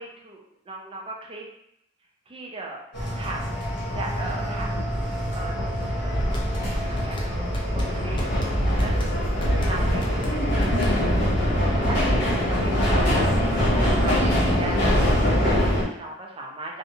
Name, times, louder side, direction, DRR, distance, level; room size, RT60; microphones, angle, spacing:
voice 1, 0.0-1.4 2.3-2.8 3.2-3.4 3.8-4.7 5.0-6.2 6.7-8.3 8.6-8.9 9.6-10.6 11.5-12.0 12.4-13.1 13.5-14.8 15.2-16.8, right 2 dB, 30° right, -1 dB, 0.5 m, -38 dB
sound 1, 2.9-15.8, equal, 60° left, 1.0 m, -23 dB
sound 2, 3.9-4.1 4.7-4.9 5.6-5.7 6.1-6.3 6.9-7.1 7.7-7.9 8.3-8.4 9.1-9.2 9.9-10.1 10.5-10.6 11.3-11.4 12.1-12.3, left 2 dB, 85° left, 0.4 m, -35 dB
sound 3, 6.3-11.3, left 1 dB, 25° left, 0.4 m, -37 dB
2.6 x 2.1 x 2.7 m, 0.73 s
head